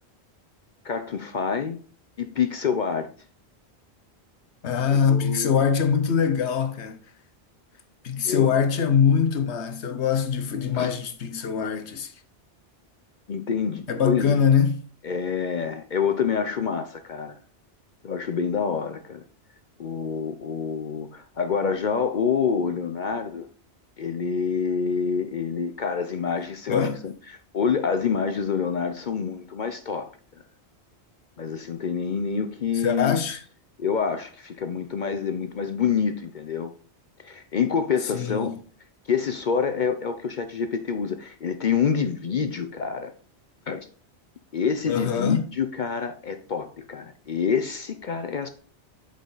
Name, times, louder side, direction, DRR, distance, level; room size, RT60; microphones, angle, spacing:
voice 1, 0.8-1.8 2.2-3.1 4.9-5.6 8.3-8.5 10.7-10.9 13.3-14.3 15.0-17.4 18.0-19.2 19.8-23.5 24.0-26.8 27.5-30.1 31.4-33.2 33.8-36.7 37.2-38.6 39.1-43.1 43.7-43.9 44.5-48.5, left 6 dB, 50° left, 0.7 m, -27 dB
voice 2, 4.6-7.0 8.0-12.1 13.9-14.8 26.7-27.0 32.7-33.4 38.1-38.6 44.9-45.4, left 7 dB, 90° left, 1.2 m, -23 dB
7.7 x 5.0 x 3.9 m
omnidirectional pair, 1.1 m